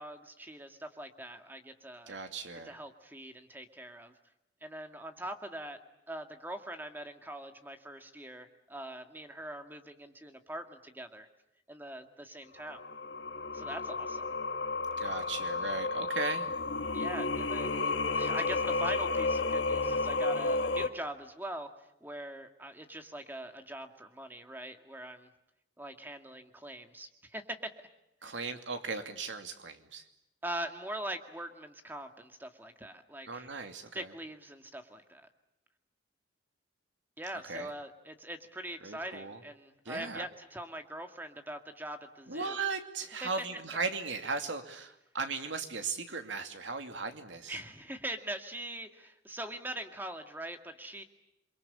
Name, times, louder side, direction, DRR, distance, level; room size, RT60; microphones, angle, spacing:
voice 1, 0.0-2.2 2.7-4.1 4.6-5.8 6.1-11.3 11.7-12.8 13.5-14.3 16.9-21.7 22.0-25.3 25.8-27.7 28.2-28.3 30.4-33.5 33.9-35.3 37.2-42.6 43.2-43.3 47.5-51.0, right 1 dB, 10° right, 6 dB, 2.0 m, -42 dB
voice 2, 2.1-2.8 15.0-16.5 28.2-30.0 33.3-34.1 37.5-37.7 38.8-39.4 39.8-40.3 42.3-47.6, right 4 dB, 85° right, 6 dB, 2.6 m, -37 dB
Singing, 12.7-20.9, left 3 dB, 75° left, 1.9 m, -32 dB
28.5 x 23.0 x 8.6 m, 0.85 s
head